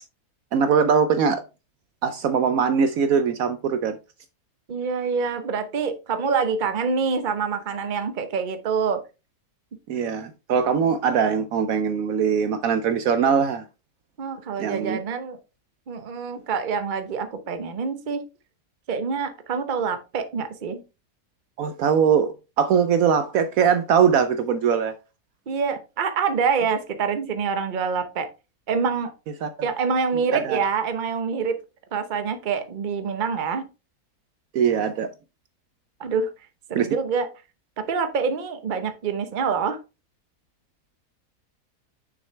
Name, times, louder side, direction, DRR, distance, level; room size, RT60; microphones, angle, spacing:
voice 1, 0.5-1.4 2.0-4.0 9.9-13.6 14.6-15.0 21.6-24.9 29.4-29.5 30.3-30.6 34.5-35.1 36.7-36.9, right 7 dB, 70° right, 1.0 m, -21 dB
voice 2, 4.7-9.0 14.2-15.4 15.9-18.2 18.9-20.8 25.5-28.3 28.7-29.1 29.6-31.6 31.9-33.6 36.0-36.3 36.7-37.3 37.8-39.8, right 5 dB, 40° right, 0.9 m, -26 dB
6.4 x 6.3 x 3.2 m
omnidirectional pair, 1.7 m